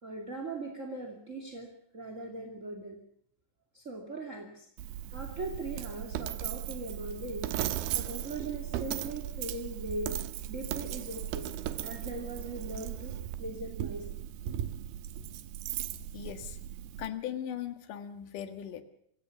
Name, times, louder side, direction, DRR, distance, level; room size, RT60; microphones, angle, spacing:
voice 1, 0.0-3.0 3.7-4.7 5.1-7.5 7.9-10.2 10.5-11.5 11.8-14.1 14.5-14.6, right 2 dB, 25° right, 3 dB, 1.8 m, -40 dB
Coin (dropping), 4.8-17.1, right 12 dB, 75° right, 2.4 m, -37 dB
voice 2, 16.1-16.6 17.0-18.8, left 10 dB, 60° left, 9 dB, 2.4 m, -38 dB
26.5 x 16.5 x 7.0 m, 0.70 s
omnidirectional pair, 5.6 m